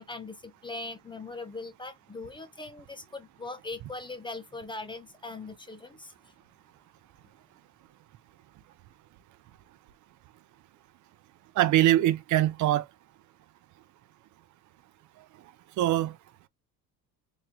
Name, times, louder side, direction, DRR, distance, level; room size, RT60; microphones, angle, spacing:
voice 1, 0.0-6.1, left 3 dB, 15° left, 0.5 m, -40 dB
voice 2, 11.6-12.9 15.8-16.2, right 13 dB, 55° right, 0.5 m, -23 dB
3.6 x 3.1 x 2.7 m
cardioid pair, 165°, 35 cm